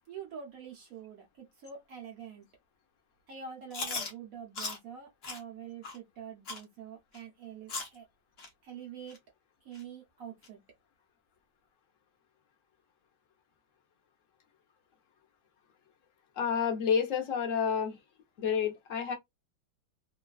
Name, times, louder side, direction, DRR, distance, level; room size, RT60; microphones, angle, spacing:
voice 1, 0.1-2.5 3.3-8.1 8.6-9.2 9.6-10.6, right 7 dB, 70° right, 0.8 m, -46 dB
Chewing mastication, 3.7-4.1 4.6-4.8 5.2-5.4 5.8-6.0 6.5-6.6 7.1-7.2 7.7-8.0 8.4-8.5 9.1-9.2 9.7-9.8 10.4-10.5, left 4 dB, 90° left, 0.5 m, -37 dB
voice 2, 16.4-17.9 18.4-19.1, left 7 dB, 60° left, 0.8 m, -29 dB
3.1 x 2.2 x 2.3 m
omnidirectional pair, 2.2 m